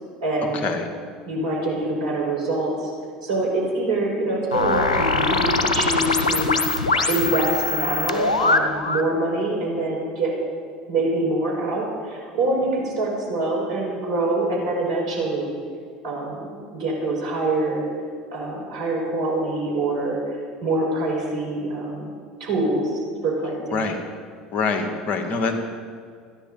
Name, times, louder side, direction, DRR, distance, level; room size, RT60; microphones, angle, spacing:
voice 1, 0.2-0.6 1.3-2.9 3.2-6.5 7.1-10.3 10.9-15.6 16.0-17.9 18.3-20.4 20.6-23.8, right 2 dB, 75° right, -2 dB, 5.3 m, -25 dB
sound 1, 4.5-9.1, left 3 dB, 85° left, 1.0 m, -22 dB
voice 2, 23.7-24.0 24.5-25.5, left 4 dB, 45° left, 5 dB, 2.3 m, -24 dB
27.0 x 10.5 x 4.2 m, 2.1 s
figure-of-eight pair, 70°, 4 cm